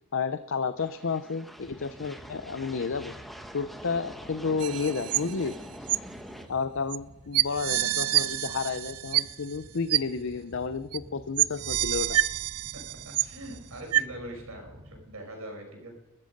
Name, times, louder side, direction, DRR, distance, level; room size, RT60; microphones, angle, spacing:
voice 1, 0.1-3.1 3.5-5.5 6.5-12.2, left 5 dB, 60° left, 12 dB, 0.6 m, -31 dB
sound 1, 0.8-6.5, equal, ahead, 1.1 m, -45 dB
sound 2, 1.6-15.1, equal, 50° right, 4.0 m, -52 dB
sound 3, 4.6-5.5 5.9-6.0 6.9-7.0 7.3-9.6 9.9-10.0 10.9-11.0 11.4-13.5 13.9-14.0, right 14 dB, 90° right, 0.5 m, -27 dB
voice 2, 12.7-15.9, right 1 dB, 75° right, 2 dB, 5.6 m, -42 dB
19.5 x 13.0 x 5.3 m, 0.94 s
head